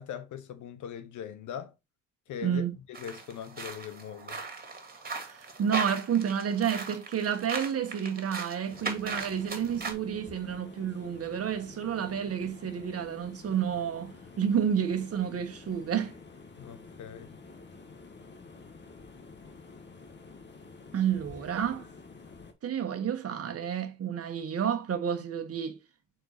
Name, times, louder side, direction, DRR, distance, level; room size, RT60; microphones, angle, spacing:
voice 1, 0.0-1.7 2.3-4.4 16.6-17.3, left 8 dB, 75° left, 1.1 m, -41 dB
voice 2, 2.4-2.7 5.2-16.1 20.9-21.8 22.6-25.8, right 8 dB, 50° right, 1.4 m, -30 dB
sound 1, 2.9-9.9, right 4 dB, 30° right, 2.3 m, -38 dB
sound 2, 8.7-22.5, left 4 dB, 35° left, 1.5 m, -49 dB
6.3 x 4.5 x 4.0 m
cardioid pair, 90°, 30 cm